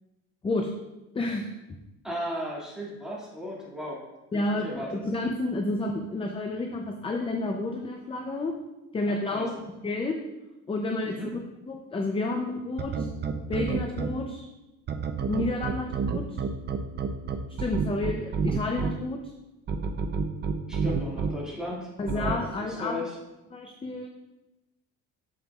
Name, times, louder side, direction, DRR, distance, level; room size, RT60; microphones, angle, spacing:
voice 1, 1.1-1.5 4.3-8.5 8.9-10.2 10.7-11.2 11.7-13.1 13.5-14.5 15.3-16.4 17.6-19.3 22.0-23.0 23.5-24.1, left 2 dB, 15° left, 3 dB, 0.5 m, -30 dB
voice 2, 2.0-4.0 4.3-5.0 9.1-9.5 11.0-11.3 20.7-23.2, equal, ahead, -5 dB, 2.1 m, -36 dB
sound 1, 12.8-14.1 14.9-18.9 19.7-21.3 22.1-22.3, right 5 dB, 30° right, 0.6 m, -28 dB
7.5 x 7.1 x 2.4 m, 1.0 s
cardioid pair, 125°, 33 cm